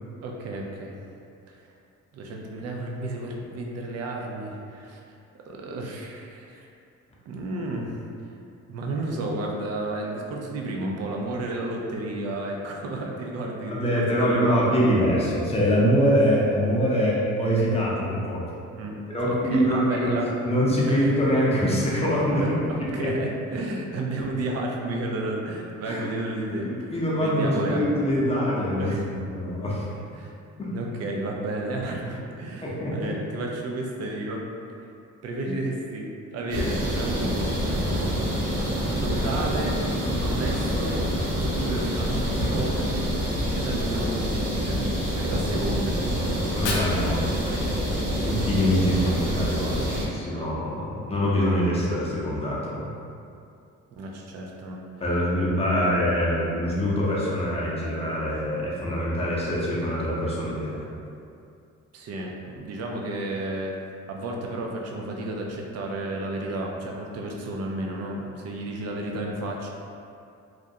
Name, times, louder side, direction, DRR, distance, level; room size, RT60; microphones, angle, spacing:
voice 1, 0.2-1.0 1.5-1.7 2.1-5.0 5.4-6.7 7.3-8.0 8.7-13.9 14.1-14.7 18.7-19.0 19.2-20.3 20.9-21.0 22.3-28.0 28.8-29.1 30.1-30.3 30.7-34.4 35.2-37.5 38.9-39.8 40.1-41.0 41.4-42.7 43.2-44.8 45.1-46.4 54.0-54.8 55.7-55.9 61.9-63.8 64.1-69.7, right 2 dB, 55° right, 0 dB, 0.5 m, -32 dB
voice 2, 13.7-18.4 19.1-20.1 20.4-22.4 22.9-23.1 25.8-26.0 26.6-29.0 29.3-29.9 30.6-30.7 32.6-33.2 46.5-47.6 48.2-52.9 55.0-60.8, equal, 20° left, -6 dB, 0.6 m, -24 dB
sound 1, 36.5-50.0, equal, 75° right, 0.8 m, -26 dB
Fire, 46.3-48.3, left 2 dB, 90° left, 0.5 m, -35 dB
2.4 x 2.1 x 2.7 m, 2.5 s
cardioid pair, 90°, 30 cm